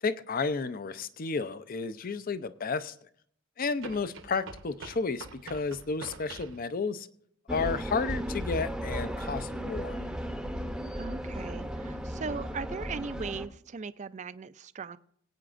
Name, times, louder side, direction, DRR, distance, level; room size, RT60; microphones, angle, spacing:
voice 1, 0.0-2.9 3.6-7.1 7.5-10.0, left 4 dB, 45° left, 0.5 m, -32 dB
sound 1, 1.4-1.5 3.8-6.6, right 4 dB, 70° right, 1.0 m, -46 dB
sound 2, 7.5-13.5, equal, 5° right, 0.7 m, -35 dB
voice 2, 10.9-15.0, right 5 dB, 35° right, 0.4 m, -39 dB
22.0 x 8.7 x 2.5 m
head